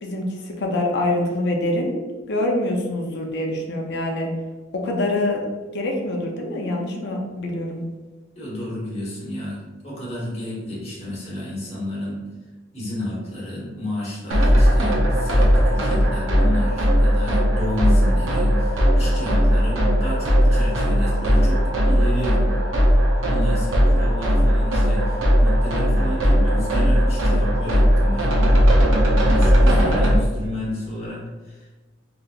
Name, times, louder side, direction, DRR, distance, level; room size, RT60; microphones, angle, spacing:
voice 1, 0.0-2.0 2.3-4.3 4.7-5.4 5.7-7.8 29.7-30.0, left 1 dB, 60° left, 1 dB, 0.6 m, -25 dB
voice 2, 8.3-12.2 12.7-22.4 23.3-28.3 29.2-31.7, left 1 dB, 30° left, -6 dB, 1.1 m, -31 dB
sound 1, 14.3-30.2, equal, 75° right, 0.7 m, -18 dB
3.3 x 2.8 x 2.4 m, 1.2 s
head